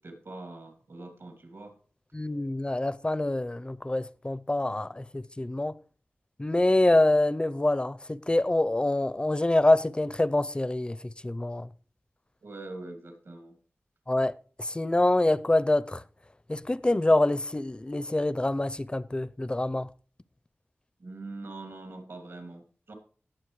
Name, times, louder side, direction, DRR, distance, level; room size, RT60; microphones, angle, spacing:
voice 1, 0.0-1.8 12.4-13.6 21.0-22.9, right 2 dB, 70° right, 2.5 m, -43 dB
voice 2, 2.1-5.7 6.4-11.0 11.2-11.7 14.1-14.3 14.6-16.0 16.5-19.9, left 2 dB, 20° left, 0.5 m, -25 dB
18.0 x 7.1 x 3.1 m
wide cardioid pair, 60°, 5 cm